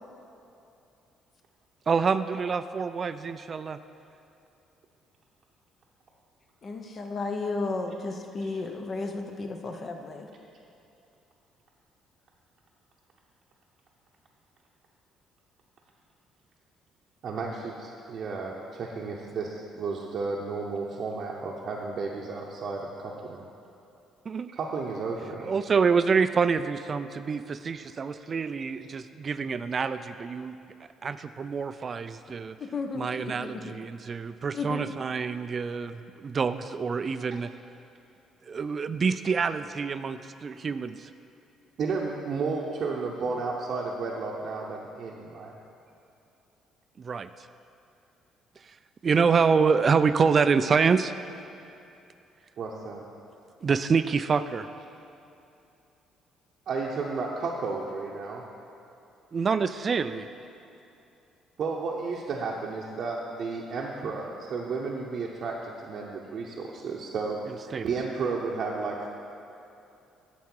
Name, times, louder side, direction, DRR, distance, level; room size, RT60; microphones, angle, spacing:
voice 1, 1.9-3.8 24.3-24.5 25.4-30.6 31.0-32.6 32.9-37.5 38.5-41.1 47.0-47.5 48.6-48.7 49.0-51.1 53.6-54.7 59.3-60.3 67.5-67.9, right 5 dB, 40° right, 12 dB, 0.3 m, -26 dB
voice 2, 6.6-10.3 32.6-33.7 34.5-34.8, left 3 dB, 45° left, 4 dB, 0.8 m, -33 dB
voice 3, 17.2-23.5 24.5-25.5 41.8-45.5 52.6-53.0 56.7-58.4 61.6-69.1, right 4 dB, 60° right, -3 dB, 0.7 m, -33 dB
9.3 x 6.3 x 4.5 m, 2.7 s
supercardioid pair, 75°, 0 cm